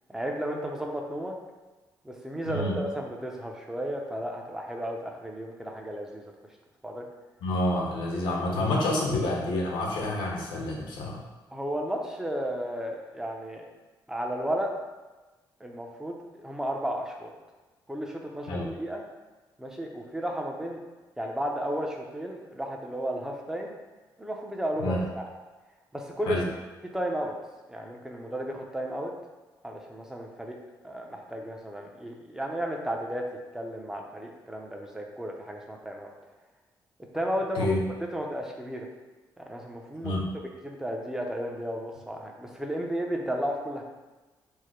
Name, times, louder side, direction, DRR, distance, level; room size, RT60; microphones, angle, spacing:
voice 1, 0.1-1.4 2.0-6.3 6.8-7.1 11.5-13.6 14.1-14.7 15.6-17.3 17.9-19.0 19.6-20.8 21.2-23.7 24.2-25.3 25.9-26.4 26.9-27.3 27.7-29.1 29.6-30.6 30.8-33.3 33.5-36.1 37.1-37.7 38.1-38.9 39.4-40.2 40.6-43.8, equal, 5° right, 1 dB, 0.7 m, -33 dB
voice 2, 2.5-2.8 7.4-11.2 18.5-18.7 24.8-25.0 26.3-26.5 37.5-37.8 40.0-40.3, left 1 dB, 90° left, -1 dB, 0.9 m, -28 dB
4.7 x 2.2 x 4.4 m, 1.2 s
cardioid pair, 90°, 8 cm